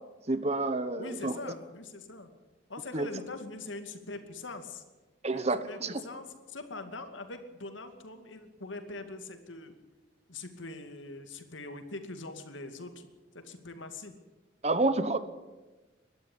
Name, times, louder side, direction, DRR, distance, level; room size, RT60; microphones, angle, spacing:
voice 1, 0.3-1.3 2.9-3.1 5.2-6.0 14.6-15.2, right 2 dB, 35° right, 13 dB, 1.1 m, -29 dB
voice 2, 1.0-2.3 2.7-4.8 5.3-9.7 10.3-14.1, left 3 dB, 80° left, 8 dB, 2.4 m, -43 dB
22.0 x 12.5 x 9.8 m, 1.2 s
head